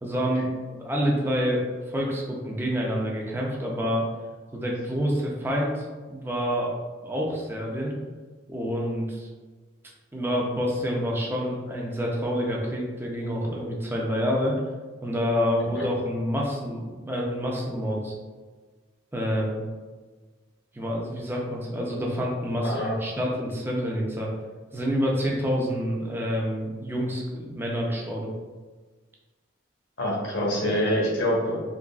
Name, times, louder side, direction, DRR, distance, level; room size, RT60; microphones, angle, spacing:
voice 1, 0.0-4.1 4.5-7.9 8.5-9.3 10.1-14.6 15.0-18.1 19.1-19.6 20.7-24.3 24.7-28.3, equal, 10° right, -2 dB, 0.5 m, -28 dB
voice 2, 22.6-23.1 30.0-31.6, equal, 75° left, -4 dB, 1.2 m, -25 dB
3.8 x 3.0 x 2.4 m, 1.4 s
head